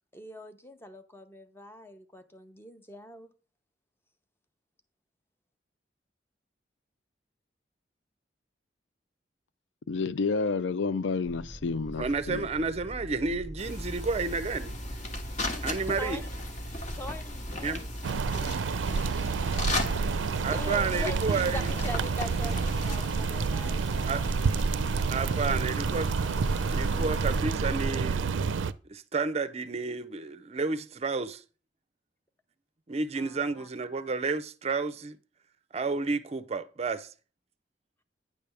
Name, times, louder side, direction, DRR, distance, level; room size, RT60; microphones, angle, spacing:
voice 1, 0.1-3.3 15.9-16.3 16.9-17.9 20.5-24.1 33.2-33.7, left 1 dB, 15° left, 0.7 m, -41 dB
voice 2, 9.9-12.5, left 4 dB, 80° left, 0.4 m, -30 dB
sound 1, 11.2-19.8, equal, 5° right, 1.1 m, -44 dB
voice 3, 12.0-14.7 15.6-16.2 17.6-17.8 20.4-21.7 24.1-24.2 25.1-26.1 26.7-28.3 28.8-31.4 32.9-35.2 35.7-37.1, right 4 dB, 35° right, 0.5 m, -31 dB
sound 2, 13.6-27.4, left 1 dB, 40° left, 1.3 m, -37 dB
sound 3, 18.0-28.7, right 4 dB, 90° right, 0.4 m, -29 dB
9.5 x 3.4 x 6.8 m
head